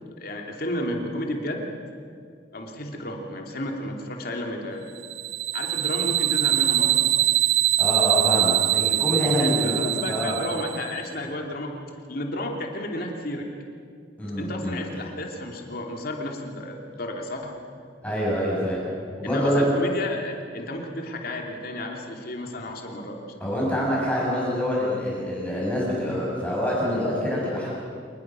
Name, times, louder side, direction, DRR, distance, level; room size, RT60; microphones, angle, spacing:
voice 1, 0.2-1.7 2.5-4.8 5.5-7.0 9.4-11.7 12.1-13.5 14.4-17.5 19.2-23.4, left 1 dB, 50° left, 1 dB, 2.9 m, -32 dB
sound 1, 5.0-11.0, right 15 dB, 65° right, 0.6 m, -23 dB
voice 2, 7.8-9.7 10.1-10.4 14.2-14.8 18.0-18.8 19.2-19.6 23.4-27.7, equal, 5° left, -6 dB, 7.0 m, -26 dB
26.5 x 20.5 x 6.3 m, 2.2 s
head